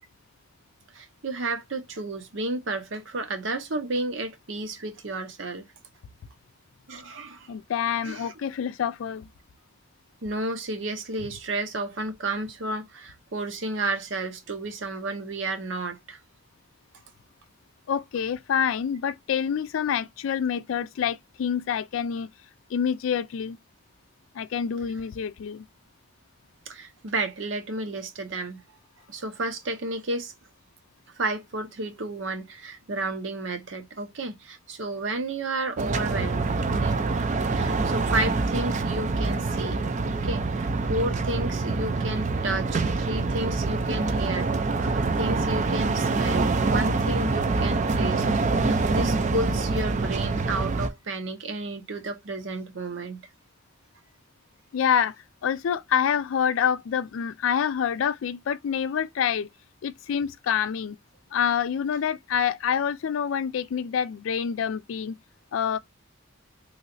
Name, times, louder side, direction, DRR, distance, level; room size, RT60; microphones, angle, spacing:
voice 1, 0.9-5.6 6.9-7.5 8.0-8.3 10.2-16.2 26.7-28.6 29.1-30.3 31.1-37.1 37.5-48.3 48.5-53.3, right 2 dB, 70° right, 0.8 m, -32 dB
voice 2, 7.5-9.3 17.9-22.3 22.7-23.6 24.3-25.7 54.7-55.1 55.4-59.5 59.8-61.0 61.3-65.1 65.5-65.8, left 8 dB, 80° left, 0.4 m, -27 dB
sound 1, 35.8-50.9, right 3 dB, 35° right, 0.4 m, -25 dB
3.1 x 2.8 x 2.5 m
head